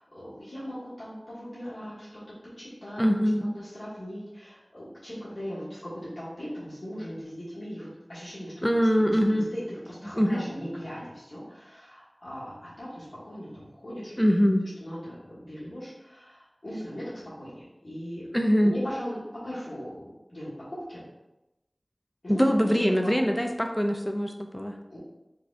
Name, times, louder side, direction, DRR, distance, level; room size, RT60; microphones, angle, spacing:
voice 1, 0.0-3.0 3.6-8.7 9.0-14.1 14.8-18.3 18.6-21.0 22.2-22.7 23.3-23.4 24.9-25.0, equal, 65° left, -12 dB, 1.5 m, -39 dB
voice 2, 3.0-3.6 8.6-9.5 10.2-10.5 14.2-14.7 18.3-18.8 22.3-24.8, equal, 10° left, 4 dB, 0.4 m, -23 dB
4.7 x 2.3 x 2.5 m, 0.98 s
wide cardioid pair, 45°, 0 cm